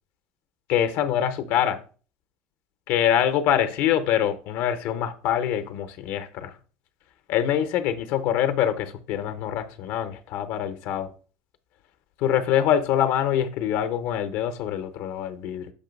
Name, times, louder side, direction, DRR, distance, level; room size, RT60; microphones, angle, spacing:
voice 1, 0.7-1.8 2.9-6.6 7.3-11.1 12.2-15.7, left 10 dB, 60° left, 0.7 m, -24 dB
6.5 x 3.0 x 5.2 m
cardioid pair, 155°, 5 cm